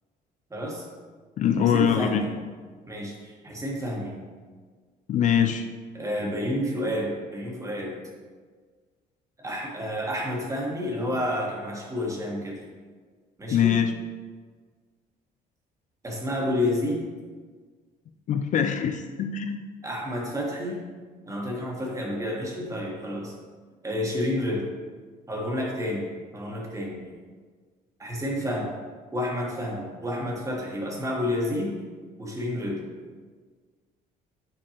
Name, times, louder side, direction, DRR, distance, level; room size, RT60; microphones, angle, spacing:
voice 1, 0.5-0.8 1.6-2.3 2.9-4.2 5.9-8.0 9.4-12.6 13.4-13.8 16.0-17.0 19.8-20.8 21.3-23.3 23.8-24.7 25.3-27.0 28.0-28.7 29.1-31.7 32.2-32.8, left 1 dB, 20° right, -2 dB, 1.4 m, -30 dB
voice 2, 1.4-2.2 5.1-5.6 13.5-13.9 18.3-19.6, left 8 dB, 50° left, 6 dB, 0.4 m, -23 dB
7.3 x 4.4 x 2.9 m, 1.5 s
cardioid pair, 110°, 17 cm